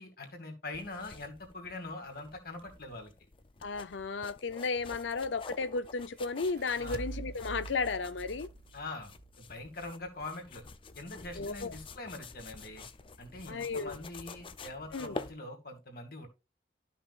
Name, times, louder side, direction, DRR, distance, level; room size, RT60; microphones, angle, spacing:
voice 1, 0.0-3.1 6.8-7.0 8.7-10.6 11.0-12.9 13.2-16.3, left 2 dB, 55° left, 2.3 m, -43 dB
sound 1, 0.7-15.3, left 3 dB, 30° left, 0.5 m, -49 dB
voice 2, 3.6-8.5 11.4-11.7 13.5-14.0 14.9-15.2, left 4 dB, 80° left, 0.7 m, -34 dB
sound 2, 6.3-9.7, right 4 dB, 55° right, 0.4 m, -45 dB
13.0 x 5.6 x 2.5 m
head